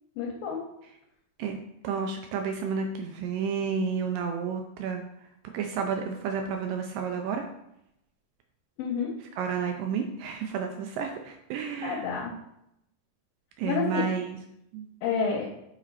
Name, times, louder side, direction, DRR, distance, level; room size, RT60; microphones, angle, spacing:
voice 1, 0.2-0.6 8.8-9.1 11.5-12.3 13.7-14.1 15.0-15.5, left 6 dB, 75° left, -3 dB, 2.4 m, -29 dB
voice 2, 1.8-5.0 5.5-7.4 9.4-12.0 13.6-14.3 14.7-14.9, right 6 dB, 90° right, 4 dB, 1.9 m, -31 dB
7.5 x 4.2 x 4.1 m, 0.80 s
omnidirectional pair, 4.6 m